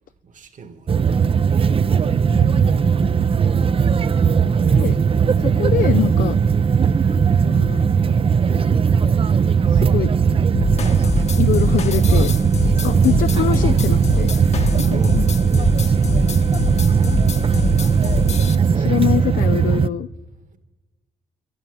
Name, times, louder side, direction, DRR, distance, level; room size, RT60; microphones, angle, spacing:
voice 1, 0.2-1.0 3.6-3.7 14.9-15.2 18.2-19.0, right 5 dB, 55° right, 1.8 m, -40 dB
sound 1, 0.9-19.9, right 6 dB, 35° right, 0.5 m, -18 dB
voice 2, 2.3-2.7 4.7-5.0 5.4-6.4 7.4-7.9 9.7-10.1 11.4-12.3 12.8-14.3 14.8-15.3 18.3-20.1, left 12 dB, 60° left, 0.4 m, -24 dB
sound 2, 10.5-18.6, left 3 dB, 45° left, 1.1 m, -24 dB
12.0 x 12.0 x 9.8 m
cardioid pair, 65°, 16 cm